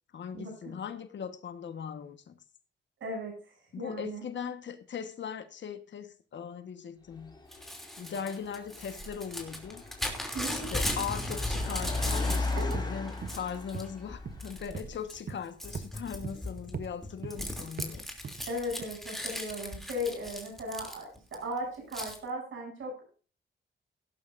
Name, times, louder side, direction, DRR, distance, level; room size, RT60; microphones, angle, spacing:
voice 1, 0.1-2.4 3.7-7.3 8.0-9.8 10.5-18.1, left 7 dB, 65° left, 9 dB, 1.4 m, -39 dB
voice 2, 3.0-4.2 10.3-10.7 12.5-12.6 18.5-23.1, equal, 80° right, 1 dB, 8.0 m, -37 dB
Car, 7.1-15.1, left 3 dB, 20° left, 3.2 m, -37 dB
Crumpling crinkling / Tearing, 7.5-12.7 13.1-13.9 14.4-14.8 15.1-21.3 21.9-22.2, left 1 dB, ahead, 3.0 m, -37 dB
sound 1, 11.8-12.0 12.3-12.4 12.7-12.9 13.2-13.4 13.7-13.9 14.2-14.4 14.7-14.9 15.3-15.4 15.7-15.9 16.2-16.4 16.7-16.9 17.2-17.4 17.8-17.9 18.2-18.4 18.8-18.9, right 6 dB, 50° right, 1.0 m, -39 dB
17.0 x 11.0 x 2.6 m, 0.38 s
cardioid pair, 115°, 20 cm